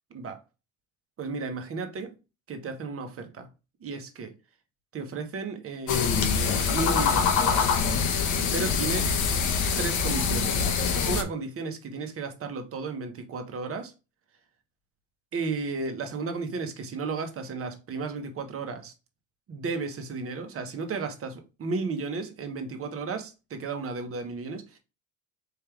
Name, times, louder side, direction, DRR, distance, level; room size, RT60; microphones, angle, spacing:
voice 1, 0.1-0.4 1.2-2.1 2.5-3.5 3.8-4.4 4.9-6.1 6.3-7.8 8.5-9.1 9.8-10.7 11.0-13.9 15.3-18.9 19.5-24.8, right 4 dB, 35° right, 1.3 m, -34 dB
sound 1, 5.9-11.2, left 5 dB, 50° left, 1.3 m, -24 dB
4.6 x 3.3 x 3.4 m
supercardioid pair, 90°, 38 cm